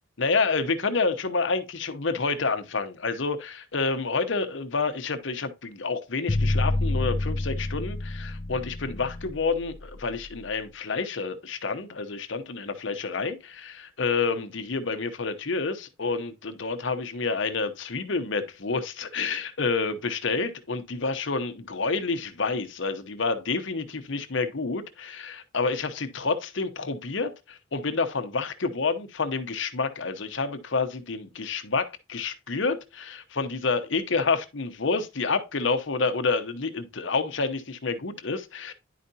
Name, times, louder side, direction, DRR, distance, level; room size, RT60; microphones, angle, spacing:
voice 1, 0.2-38.7, left 4 dB, 65° left, 0.9 m, -29 dB
sound 1, 6.3-10.4, left 2 dB, 25° left, 0.3 m, -28 dB
10.0 x 4.9 x 2.7 m
head